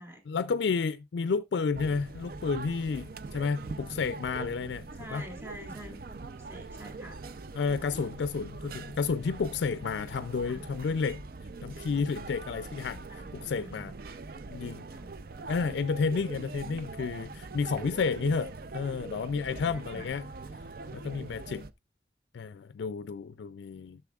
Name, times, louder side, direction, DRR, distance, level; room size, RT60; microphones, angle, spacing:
voice 1, 0.3-5.2 7.5-11.2 11.6-13.9 14.5-14.8 15.5-20.3 20.9-21.7 22.3-24.0, left 5 dB, 70° left, 0.4 m, -31 dB
sound 1, 1.7-21.7, right 3 dB, 50° right, 0.5 m, -43 dB
voice 2, 4.9-7.2 10.4-10.7 13.1-13.3 13.6-13.7 14.9-15.1 17.5-17.6 19.6-20.1, right 1 dB, 15° right, 1.7 m, -47 dB
11.5 x 6.8 x 2.3 m
head